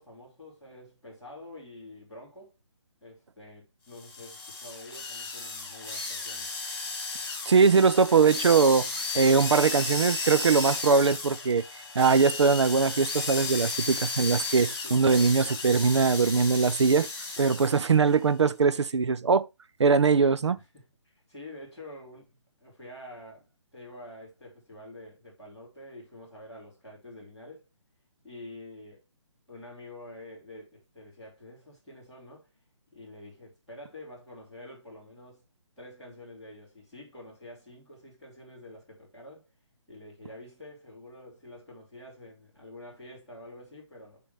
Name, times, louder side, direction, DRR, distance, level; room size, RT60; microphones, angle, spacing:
voice 1, 0.0-2.5 3.0-6.5 14.0-14.1 14.8-15.3 20.5-27.7 28.2-29.0 29.5-32.5 32.9-35.4 35.8-39.5 39.9-44.2, left 1 dB, ahead, 3.7 m, -47 dB
sound 1, 4.0-17.9, left 3 dB, 45° left, 1.9 m, -34 dB
voice 2, 7.5-8.9 9.1-11.6 11.9-17.1 17.4-19.5 19.8-20.6, right 5 dB, 65° right, 0.6 m, -21 dB
9.0 x 3.9 x 3.4 m
hypercardioid pair, 175°, 16 cm